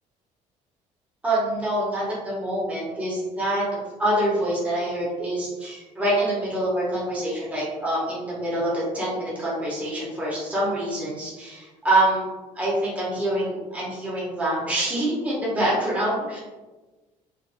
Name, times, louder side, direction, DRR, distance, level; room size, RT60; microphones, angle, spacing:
voice 1, 1.2-12.3 12.5-16.4, right 1 dB, 10° right, -7 dB, 0.9 m, -25 dB
3.4 x 2.2 x 2.5 m, 1.2 s
cardioid pair, 160°, 14 cm